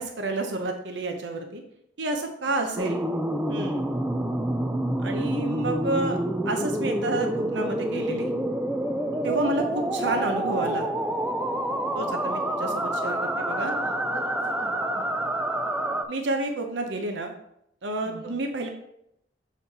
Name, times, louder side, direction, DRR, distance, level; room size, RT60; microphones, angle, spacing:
voice 1, 0.0-1.6 2.0-3.0 3.5-3.9 5.0-6.2 6.4-8.3 9.2-10.9 11.9-13.7 16.1-17.3 17.8-18.7, right 2 dB, 70° right, 4 dB, 0.7 m, -29 dB
sound 1, 2.8-16.0, right 1 dB, 10° right, 0.4 m, -28 dB
voice 2, 13.6-15.1 18.0-18.4, left 1 dB, 20° left, -3 dB, 0.9 m, -44 dB
7.1 x 4.2 x 4.1 m, 0.76 s
head